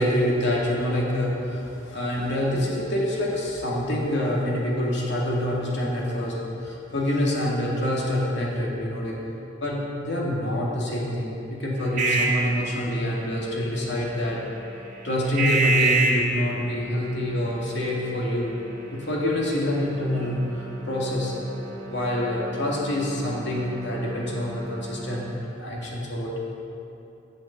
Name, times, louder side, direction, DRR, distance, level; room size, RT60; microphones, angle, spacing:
voice 1, 0.0-9.2 9.6-14.4 15.0-18.5 18.9-21.3 21.8-25.2 25.6-26.4, left 1 dB, 60° left, -3 dB, 2.2 m, -26 dB
sound 1, 11.8-25.3, right 3 dB, 40° right, 1.5 m, -31 dB
10.5 x 5.4 x 8.5 m, 2.8 s
head